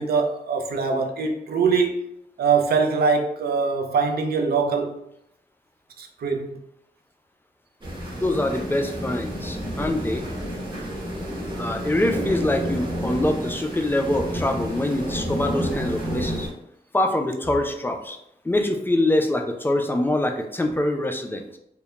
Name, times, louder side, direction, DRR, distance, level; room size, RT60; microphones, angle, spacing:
voice 1, 0.0-2.0 2.4-5.0 6.0-6.6, right 5 dB, 75° right, 0.4 m, -23 dB
sound 1, 7.8-16.5, equal, 30° right, 0.8 m, -30 dB
voice 2, 8.1-10.3 11.6-16.5 16.9-18.2 18.4-21.4, left 1 dB, 15° left, 0.3 m, -24 dB
2.2 x 2.1 x 2.9 m
cardioid pair, 70°, 16 cm